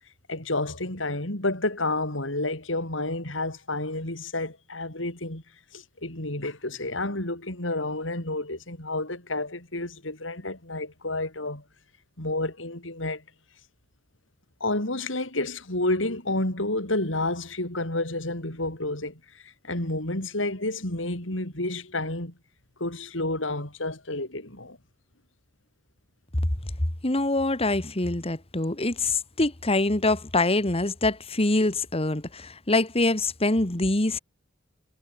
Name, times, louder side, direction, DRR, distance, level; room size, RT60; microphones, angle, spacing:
voice 1, 0.3-5.4 5.7-11.6 12.2-13.2 14.6-22.3 22.8-24.8, left 2 dB, 80° left, 5.9 m, -30 dB
voice 2, 27.0-34.2, left 2 dB, 30° left, 2.1 m, -24 dB
head